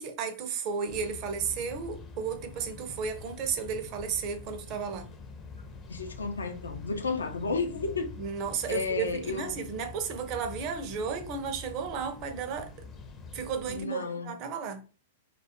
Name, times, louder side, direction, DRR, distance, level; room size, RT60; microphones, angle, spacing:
voice 1, 0.0-5.1 8.2-12.9 13.3-14.8, right 6 dB, 45° right, 0.5 m, -33 dB
sound 1, 0.9-13.8, left 4 dB, 25° left, 0.4 m, -46 dB
voice 2, 5.9-8.1 8.7-9.6 13.7-14.3, left 4 dB, 85° left, 0.4 m, -32 dB
2.3 x 2.1 x 2.8 m
hypercardioid pair, 105°, 0 cm